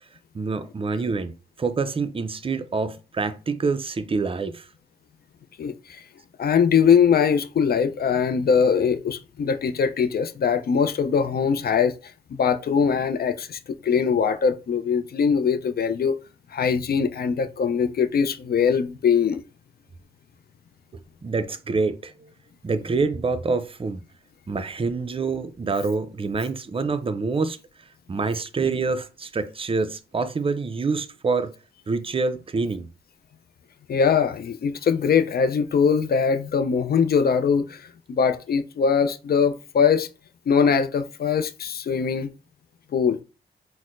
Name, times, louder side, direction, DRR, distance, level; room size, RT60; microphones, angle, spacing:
voice 1, 0.3-4.7 21.2-22.3 22.6-24.0 24.5-27.6 28.1-31.5 31.9-32.9, right 4 dB, 30° right, 0.4 m, -26 dB
voice 2, 5.6-6.0 6.4-11.9 12.4-16.2 16.5-19.4 33.9-40.1 40.5-42.3 42.9-43.2, left 6 dB, 55° left, 0.4 m, -22 dB
4.2 x 2.0 x 2.5 m
supercardioid pair, 50°, 20 cm